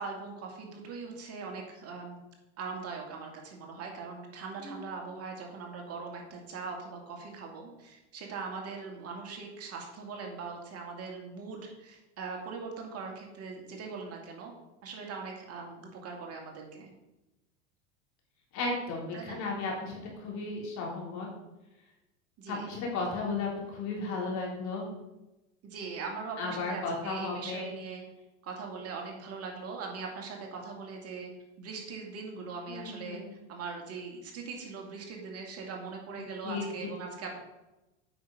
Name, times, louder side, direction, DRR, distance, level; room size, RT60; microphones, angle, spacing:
voice 1, 0.0-2.2 2.6-14.5 14.8-16.9 19.1-19.4 22.4-22.7 25.6-28.0 28.4-31.3 31.6-33.2 33.5-37.4, right 4 dB, 40° right, 1 dB, 2.4 m, -41 dB
voice 2, 18.5-21.3 22.5-24.8 26.4-27.7 32.7-33.3 36.4-36.7, left 3 dB, 50° left, -2 dB, 3.7 m, -34 dB
8.6 x 5.9 x 5.4 m, 0.99 s
supercardioid pair, 105°, 36 cm